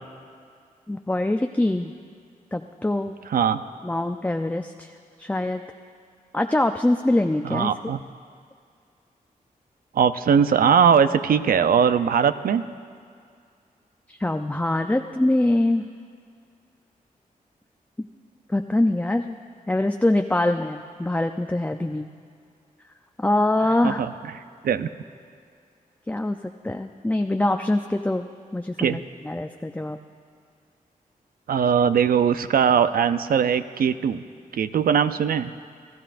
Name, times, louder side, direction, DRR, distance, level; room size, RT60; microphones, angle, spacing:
voice 1, 0.9-1.9 2.5-3.1 3.8-4.9 5.2-5.6 6.3-7.7 14.2-15.8 18.5-19.4 19.7-22.0 23.2-24.0 26.1-26.4 26.6-28.3 28.5-30.0, left 1 dB, 10° left, 5 dB, 0.5 m, -23 dB
voice 2, 3.3-3.6 7.4-8.0 9.9-12.6 23.8-24.1 24.6-24.9 28.8-29.0 31.5-34.2 34.5-35.5, right 7 dB, 75° right, 11 dB, 0.5 m, -20 dB
28.5 x 13.0 x 2.6 m, 2.2 s
cardioid pair, 65°, 15 cm